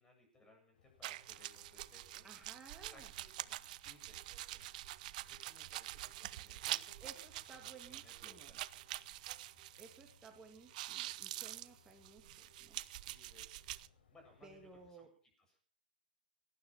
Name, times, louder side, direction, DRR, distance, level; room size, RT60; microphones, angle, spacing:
voice 1, 0.0-2.3 2.9-7.1 7.5-8.9 13.0-13.7 14.1-15.1 15.5-15.6, left 2 dB, 10° left, 3 dB, 8.0 m, -65 dB
sound 1, 0.7-14.9, left 7 dB, 85° left, 7.0 m, -70 dB
sound 2, 1.0-10.3 10.5-13.9, right 16 dB, 55° right, 0.8 m, -46 dB
voice 2, 2.2-3.1 7.0-8.5 9.8-12.8 14.4-15.1, right 4 dB, 10° right, 3 dB, 2.6 m, -57 dB
18.5 x 12.0 x 5.8 m, 0.42 s
hypercardioid pair, 145°, 5 cm